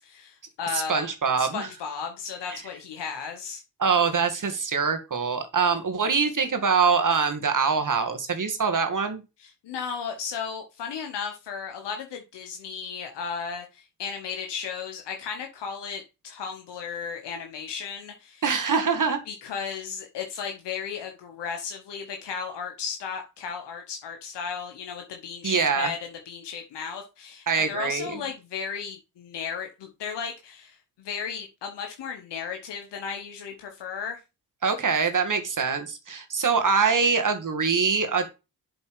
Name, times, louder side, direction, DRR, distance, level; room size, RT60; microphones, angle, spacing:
voice 1, 0.0-1.1 1.4-3.6 9.4-18.4 19.3-34.2, left 6 dB, 80° left, 4 dB, 1.1 m, -35 dB
voice 2, 0.7-1.7 2.4-2.6 3.8-9.2 18.4-19.2 25.4-25.9 27.5-28.2 34.6-38.4, right 5 dB, 45° right, 7 dB, 1.9 m, -24 dB
7.7 x 4.3 x 4.8 m, 0.28 s
supercardioid pair, 40°, 41 cm